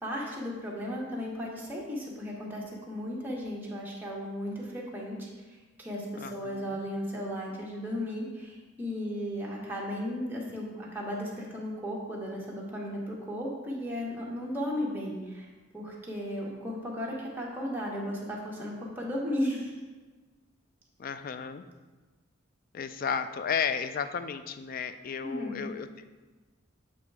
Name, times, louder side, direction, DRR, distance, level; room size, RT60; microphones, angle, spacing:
voice 1, 0.0-5.3 5.8-15.5 15.7-19.7 25.2-25.7, equal, 10° right, -4 dB, 1.1 m, -35 dB
voice 2, 6.2-6.8 21.0-21.6 22.7-26.0, left 7 dB, 45° left, 11 dB, 0.3 m, -33 dB
8.0 x 3.2 x 4.7 m, 1.3 s
head